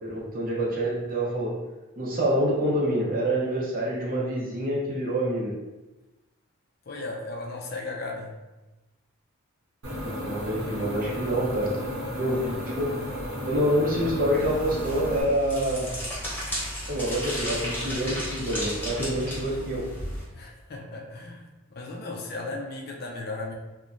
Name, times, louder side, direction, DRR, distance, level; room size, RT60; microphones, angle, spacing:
voice 1, 0.0-1.5 2.0-5.5 10.0-11.7 12.2-12.9 13.5-15.9 16.9-19.8, equal, 40° right, -4 dB, 0.6 m, -27 dB
voice 2, 6.9-8.3 12.0-12.4 20.3-23.5, left 2 dB, 45° left, 0 dB, 0.4 m, -36 dB
sound 1, 9.8-15.2, equal, 75° right, 0.8 m, -33 dB
sound 2, 14.3-20.2, equal, 10° left, 0.7 m, -34 dB
3.0 x 2.1 x 2.4 m, 1.1 s
head